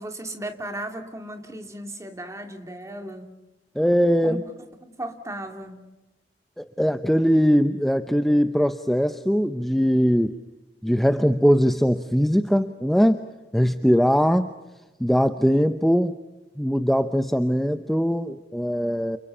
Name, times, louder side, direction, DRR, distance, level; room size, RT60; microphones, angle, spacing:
voice 1, 0.0-3.3 4.2-4.4 4.8-5.8, right 1 dB, 15° right, 6 dB, 2.7 m, -36 dB
voice 2, 3.8-4.4 6.6-10.4 10.8-13.3 13.5-14.5 15.0-16.2 16.6-19.2, equal, ahead, 9 dB, 0.8 m, -21 dB
30.0 x 29.5 x 5.6 m, 1.1 s
head